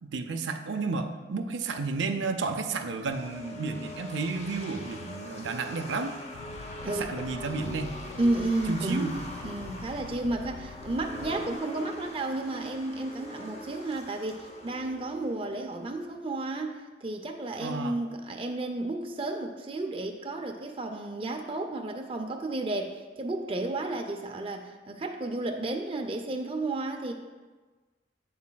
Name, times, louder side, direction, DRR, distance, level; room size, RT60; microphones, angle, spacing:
voice 1, 0.0-6.2 6.8-7.9 8.7-9.2 17.6-18.0, right 4 dB, 85° right, 6 dB, 0.5 m, -32 dB
sound 1, 3.1-16.1, left 1 dB, 35° left, 0.7 m, -43 dB
Fire, 6.3-11.6, left 4 dB, 75° left, 0.3 m, -45 dB
voice 2, 6.8-7.1 8.2-27.1, right 2 dB, 30° right, 3 dB, 0.5 m, -32 dB
8.5 x 7.2 x 2.3 m, 1.3 s
head